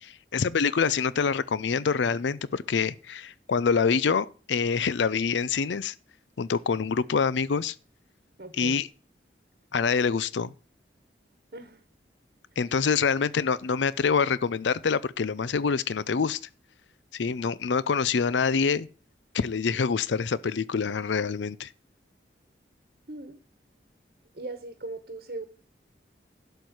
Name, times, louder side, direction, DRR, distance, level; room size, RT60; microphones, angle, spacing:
voice 1, 0.0-5.9 6.4-7.7 8.6-8.9 9.7-10.5 12.6-16.4 17.1-18.9 19.3-21.7, left 5 dB, 90° left, 0.5 m, -26 dB
voice 2, 8.4-8.8 11.5-11.8 23.1-23.4 24.3-25.4, right 2 dB, 55° right, 1.2 m, -39 dB
11.5 x 4.6 x 8.0 m
head